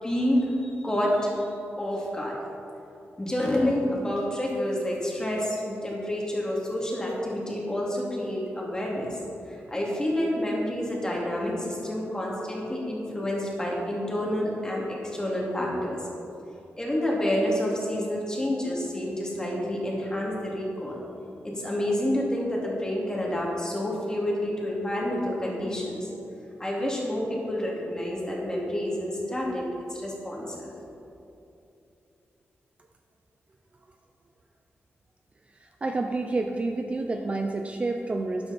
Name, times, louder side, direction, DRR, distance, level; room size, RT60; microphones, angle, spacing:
voice 1, 0.0-1.5 1.8-2.4 3.2-9.2 9.5-16.0 16.8-21.0 21.4-26.1 26.6-30.7, left 1 dB, 15° left, -3 dB, 2.5 m, -28 dB
voice 2, 35.8-38.5, right 2 dB, 25° right, 4 dB, 0.5 m, -29 dB
12.5 x 10.5 x 4.2 m, 2.8 s
wide cardioid pair, 145°, 5 cm